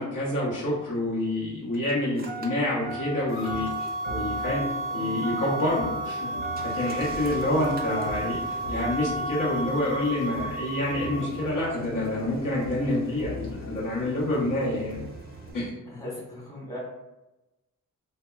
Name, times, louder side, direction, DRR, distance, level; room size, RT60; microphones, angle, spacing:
voice 1, 0.0-4.6 4.9-6.3 6.6-15.0 15.5-15.8, left 1 dB, 80° left, -6 dB, 1.0 m, -28 dB
Engine starting, 0.6-15.7, left 1 dB, 30° right, 0.4 m, -39 dB
sound 1, 2.8-15.5, left 2 dB, 60° left, 0.4 m, -40 dB
sound 2, 3.3-11.4, right 2 dB, 40° left, 0.8 m, -33 dB
voice 2, 15.9-16.8, equal, 10° left, -5 dB, 1.1 m, -37 dB
2.7 x 2.2 x 2.2 m, 0.99 s
cardioid pair, 80°, 32 cm